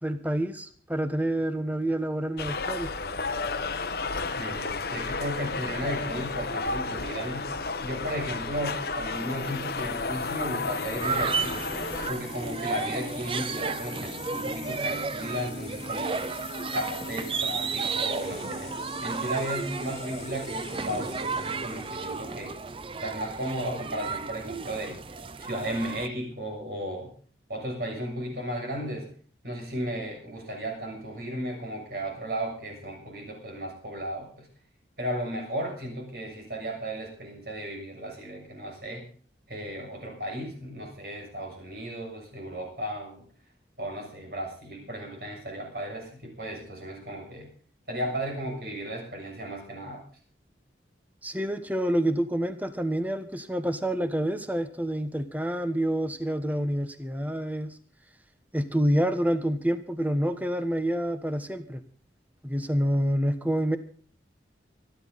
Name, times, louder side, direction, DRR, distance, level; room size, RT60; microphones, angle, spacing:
voice 1, 0.0-2.9 51.2-57.8 58.5-61.8 62.4-63.8, equal, 10° right, 10 dB, 1.1 m, -28 dB
sound 1, 2.4-12.1, left 4 dB, 55° left, 1.1 m, -32 dB
voice 2, 4.3-7.5 7.8-11.6 12.1-16.3 16.7-22.6 23.0-25.0 25.4-27.1 27.5-29.1 29.4-34.5 35.0-39.1 39.5-43.2 43.8-47.5 47.9-50.0, equal, 55° right, 1 dB, 7.0 m, -35 dB
sound 2, 9.1-22.5, left 3 dB, 40° left, 1.7 m, -42 dB
sound 3, 11.0-26.1, right 4 dB, 30° right, 0.6 m, -33 dB
26.0 x 10.5 x 4.1 m, 0.43 s
head